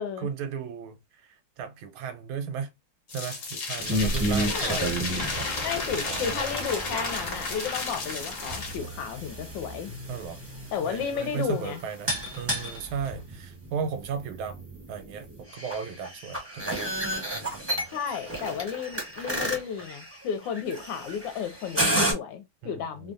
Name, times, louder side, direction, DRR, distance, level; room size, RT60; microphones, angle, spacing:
voice 1, 0.2-2.7 3.1-4.9 5.3-5.5 6.0-6.6 10.1-10.4 10.8-14.6 14.9-16.8 17.3-18.2 22.6-23.1, right 7 dB, 85° right, 1.5 m, -36 dB
sound 1, 3.1-8.8, left 3 dB, 50° left, 1.1 m, -33 dB
sound 2, 3.8-22.1, right 1 dB, 15° right, 0.6 m, -32 dB
voice 2, 4.5-5.0 5.6-9.9 10.7-11.8 17.9-23.1, left 7 dB, 70° left, 1.2 m, -33 dB
3.3 x 2.3 x 2.4 m
omnidirectional pair, 2.3 m